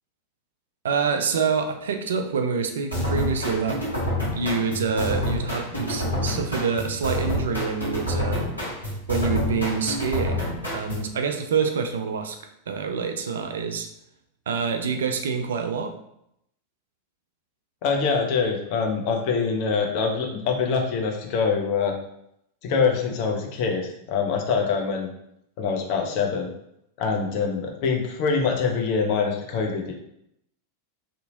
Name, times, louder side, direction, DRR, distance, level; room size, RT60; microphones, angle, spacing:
voice 1, 0.8-3.8 4.3-8.5 9.1-12.4 12.7-13.9 14.5-15.9, right 5 dB, 65° right, 6 dB, 0.3 m, -26 dB
sound 1, 2.9-11.1, left 1 dB, 85° left, 1.0 m, -28 dB
voice 2, 17.8-21.9 22.6-25.1 25.6-26.5 27.0-29.9, left 5 dB, 45° left, 2 dB, 0.5 m, -24 dB
2.7 x 2.6 x 2.6 m, 0.77 s
figure-of-eight pair, 90°, 0 cm